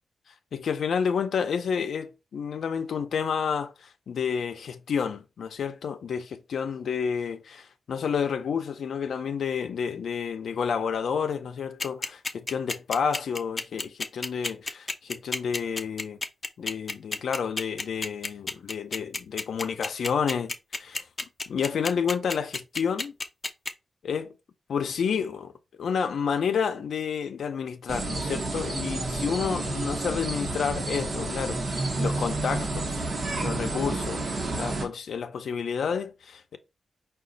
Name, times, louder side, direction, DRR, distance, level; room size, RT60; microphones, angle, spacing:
voice 1, 0.5-16.2 16.6-21.1 21.5-23.1 24.0-24.3 24.7-25.5 25.8-33.1 33.4-34.2 34.5-36.6, left 6 dB, 85° left, 0.4 m, -30 dB
sound 1, 11.8-23.7, left 3 dB, 25° left, 0.4 m, -30 dB
sound 2, 27.9-34.9, right 2 dB, 50° right, 0.9 m, -30 dB
5.0 x 2.3 x 3.8 m
wide cardioid pair, 155°, 0 cm